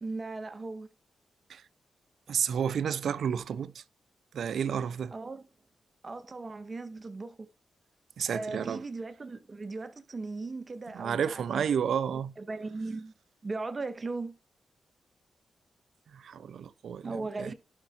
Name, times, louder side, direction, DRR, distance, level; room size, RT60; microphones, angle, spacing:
voice 1, 0.0-0.9 5.1-5.4 6.0-7.5 8.3-11.6 12.4-13.1 13.4-14.4 17.0-17.5, right 3 dB, 40° right, 1.6 m, -38 dB
voice 2, 2.3-3.8 4.3-5.1 8.2-8.8 10.9-12.3 16.1-17.5, right 7 dB, 75° right, 0.5 m, -31 dB
11.0 x 5.1 x 4.6 m
cardioid pair, 55°, 0 cm